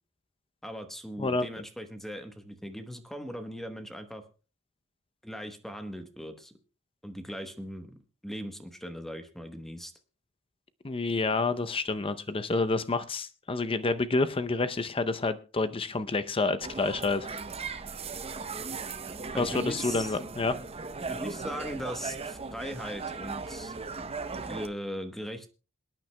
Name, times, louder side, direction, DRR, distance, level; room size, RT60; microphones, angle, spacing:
voice 1, 0.6-4.2 5.2-6.5 7.0-9.9 19.3-20.2 21.0-24.1 24.4-25.5, equal, ahead, 6 dB, 1.0 m, -39 dB
voice 2, 10.8-17.3 19.4-20.6, left 3 dB, 25° left, 11 dB, 0.6 m, -28 dB
sound 1, 16.6-24.7, right 4 dB, 30° right, 0.7 m, -38 dB
27.5 x 9.1 x 2.2 m, 0.35 s
head